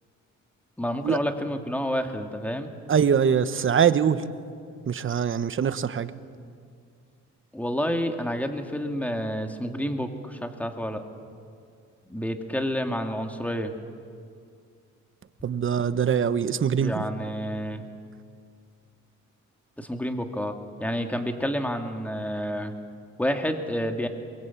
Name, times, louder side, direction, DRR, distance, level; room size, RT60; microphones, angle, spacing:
voice 1, 0.8-2.7 7.5-11.0 12.1-13.7 16.8-17.8 19.8-20.5 20.8-22.7 23.2-24.1, equal, 5° left, 5 dB, 2.4 m, -29 dB
voice 2, 2.9-4.2 4.9-6.1 15.4-17.0, right 7 dB, 45° right, 13 dB, 1.1 m, -23 dB
22.5 x 22.0 x 8.5 m, 2.3 s
cardioid pair, 90°, 30 cm